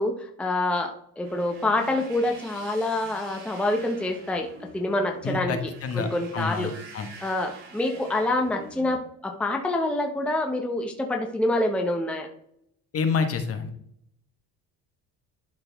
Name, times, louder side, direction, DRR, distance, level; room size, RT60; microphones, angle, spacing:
voice 1, 0.0-4.5 4.7-5.6 5.9-6.7 7.2-12.3, left 2 dB, 5° left, 2 dB, 0.8 m, -26 dB
sound 1, 1.2-9.0, right 3 dB, 65° right, 3.3 m, -46 dB
voice 2, 5.2-6.1 6.3-7.1 12.9-13.7, left 5 dB, 40° left, 7 dB, 1.3 m, -28 dB
11.5 x 4.0 x 3.5 m, 0.72 s
cardioid pair, 130°, 36 cm